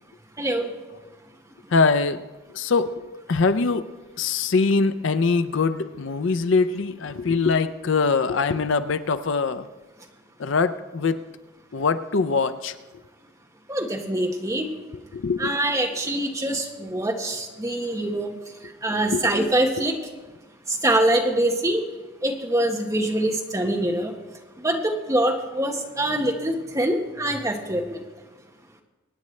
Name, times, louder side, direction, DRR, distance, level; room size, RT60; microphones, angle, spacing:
voice 1, 0.4-0.7 13.7-14.7 15.4-18.3 18.8-20.0 20.8-21.8 22.2-24.1 24.6-28.0, right 1 dB, 15° right, 2 dB, 1.1 m, -24 dB
voice 2, 1.7-2.2 2.5-2.9 3.3-3.8 4.2-9.7 10.4-11.2 11.7-12.7 15.1-15.6 19.1-19.4, left 4 dB, 65° left, 12 dB, 0.5 m, -22 dB
24.5 x 9.4 x 3.2 m, 1.2 s
head